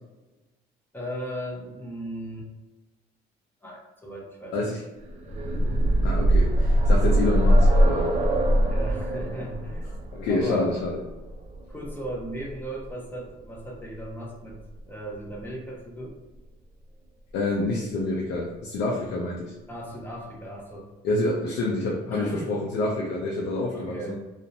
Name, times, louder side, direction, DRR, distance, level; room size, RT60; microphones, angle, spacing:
voice 1, 0.9-2.5 3.6-4.7 8.7-10.7 11.7-14.6 14.8-16.2 19.7-20.9 22.1-22.5 23.7-24.2, right 1 dB, 10° left, -2 dB, 0.6 m, -37 dB
sound 1, 5.1-12.9 14.0-14.1 14.5-14.6, equal, 40° right, 0.4 m, -22 dB
voice 2, 6.0-8.1 10.1-11.0 17.3-19.5 21.0-24.2, left 2 dB, 85° left, -2 dB, 0.5 m, -27 dB
2.7 x 2.0 x 2.5 m, 1.1 s
cardioid pair, 110°, 17 cm